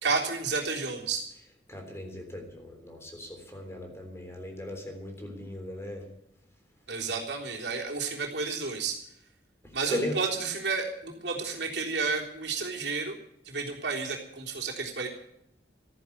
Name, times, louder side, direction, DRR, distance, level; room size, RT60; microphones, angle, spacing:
voice 1, 0.0-1.3 6.9-9.0 9.7-13.2 13.5-15.1, right 4 dB, 70° right, -1 dB, 3.6 m, -31 dB
voice 2, 1.7-6.1 9.6-10.2, left 1 dB, 15° left, 3 dB, 3.5 m, -37 dB
14.5 x 10.5 x 8.7 m, 0.77 s
head